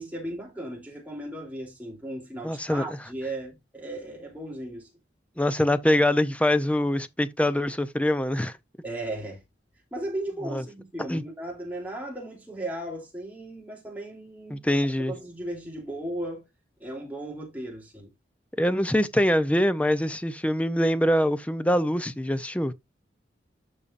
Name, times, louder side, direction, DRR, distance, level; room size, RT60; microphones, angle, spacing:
voice 1, 0.0-4.9 8.8-9.4 9.9-14.6 15.1-16.4 16.8-18.1, right 1 dB, 10° right, 3.0 m, -36 dB
voice 2, 2.4-3.0 5.4-8.6 10.4-10.6 11.1-11.2 14.5-15.1 18.6-22.7, left 1 dB, 5° left, 0.5 m, -24 dB
12.5 x 5.5 x 2.5 m
head